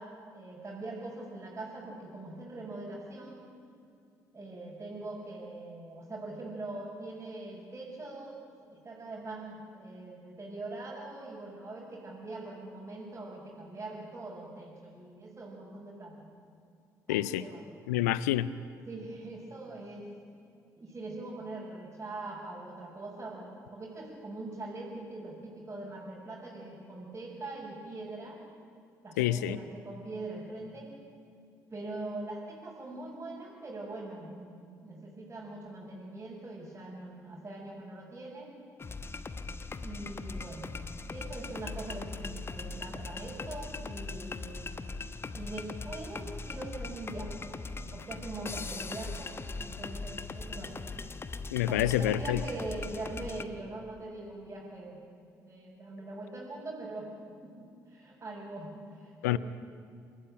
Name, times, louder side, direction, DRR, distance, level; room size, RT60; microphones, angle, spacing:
voice 1, 0.0-3.5 4.3-8.4 8.7-16.3 17.1-17.7 18.9-20.1 20.8-28.4 29.0-30.9 31.7-38.5 39.8-40.7 41.1-44.7 45.3-47.5 47.9-49.4 49.6-50.9 51.7-55.0 55.4-57.1 57.4-59.4, right 2 dB, 25° right, -7 dB, 5.9 m, -42 dB
voice 2, 17.1-17.4 17.9-18.5 29.2-29.6 51.5-52.4 59.2-59.4, left 13 dB, 70° left, 18 dB, 0.6 m, -27 dB
sound 1, 38.8-53.4, left 3 dB, 25° left, 1.1 m, -40 dB
27.5 x 13.5 x 8.9 m, 2.4 s
figure-of-eight pair, 45°, 9 cm